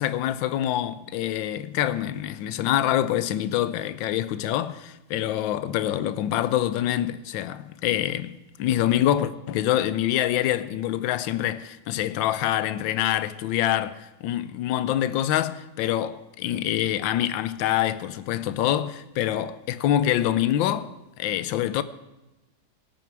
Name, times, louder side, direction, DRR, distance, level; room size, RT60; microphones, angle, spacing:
voice 1, 0.0-20.9 21.2-21.8, left 12 dB, 85° left, 1.4 m, -25 dB
17.5 x 9.2 x 4.7 m
omnidirectional pair, 2.1 m